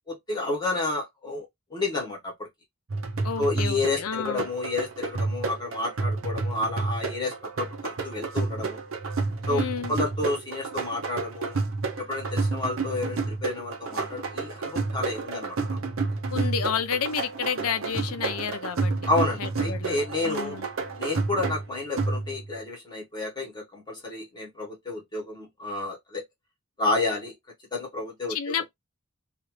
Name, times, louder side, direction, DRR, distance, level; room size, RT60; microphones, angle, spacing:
voice 1, 0.1-1.4 1.7-2.5 3.4-8.8 9.5-9.6 9.9-11.6 12.0-15.8 19.1-20.6 21.0-26.2 26.8-27.3 27.7-28.5, left 2 dB, 20° left, 1.4 m, -30 dB
sound 1, 2.9-22.6, right 3 dB, 60° right, 0.7 m, -30 dB
voice 2, 3.2-4.5 9.5-9.9 16.3-18.9 19.4-20.7 28.3-28.7, left 7 dB, 85° left, 0.5 m, -31 dB
2.9 x 2.5 x 3.1 m
head